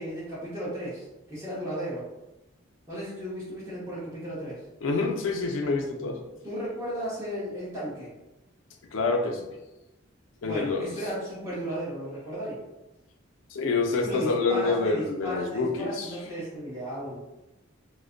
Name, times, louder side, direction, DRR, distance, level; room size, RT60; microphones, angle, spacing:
voice 1, 0.0-2.1 2.9-4.6 6.4-8.1 10.4-12.6 14.0-17.2, equal, 15° right, -9 dB, 0.9 m, -35 dB
voice 2, 4.8-6.2 8.9-9.4 10.4-10.9 13.5-16.1, left 3 dB, 75° left, 3 dB, 0.4 m, -27 dB
2.4 x 2.1 x 2.4 m, 0.96 s
head